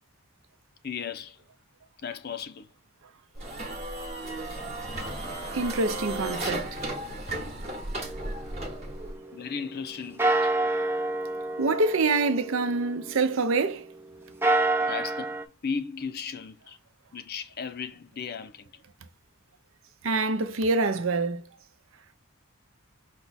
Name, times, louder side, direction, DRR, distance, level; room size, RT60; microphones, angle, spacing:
voice 1, 0.8-1.4 2.0-2.7 9.3-10.6 14.9-15.4 15.6-16.8 17.1-18.8, left 6 dB, 45° left, 0.5 m, -36 dB
sound 1, 3.4-9.2, right 1 dB, 30° right, 1.0 m, -34 dB
voice 2, 5.5-6.8 11.6-13.9 20.0-21.4, right 3 dB, 60° right, 0.6 m, -26 dB
sound 2, 8.0-9.8 10.2-13.7 14.2-15.4, right 2 dB, 10° right, 0.4 m, -29 dB
5.4 x 2.3 x 4.0 m
head